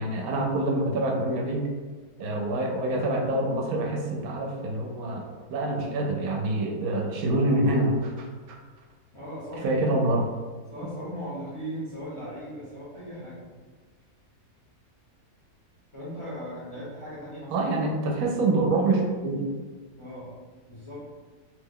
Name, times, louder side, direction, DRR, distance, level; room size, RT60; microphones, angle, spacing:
voice 1, 0.0-1.7 2.2-8.3 9.6-10.3 17.5-19.5, right 2 dB, 80° right, 1 dB, 1.0 m, -26 dB
voice 2, 9.1-9.8 10.7-13.4 15.9-17.7 20.0-20.3 20.7-21.0, equal, 30° left, -9 dB, 0.6 m, -38 dB
3.0 x 2.1 x 3.5 m, 1.4 s
omnidirectional pair, 1.5 m